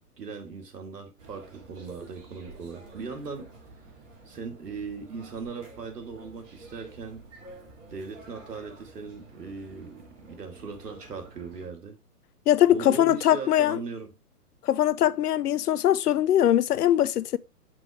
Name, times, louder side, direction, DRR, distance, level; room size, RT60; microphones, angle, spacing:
voice 1, 0.2-3.5 3.8-3.9 4.3-7.3 7.9-12.0 12.7-14.1, right 4 dB, 85° right, 2.0 m, -39 dB
sound 1, 1.2-11.7, right 2 dB, 50° right, 2.7 m, -50 dB
voice 2, 12.5-13.8 14.6-17.4, left 11 dB, 75° left, 0.6 m, -22 dB
6.0 x 5.0 x 3.3 m
hypercardioid pair, 150°, 47 cm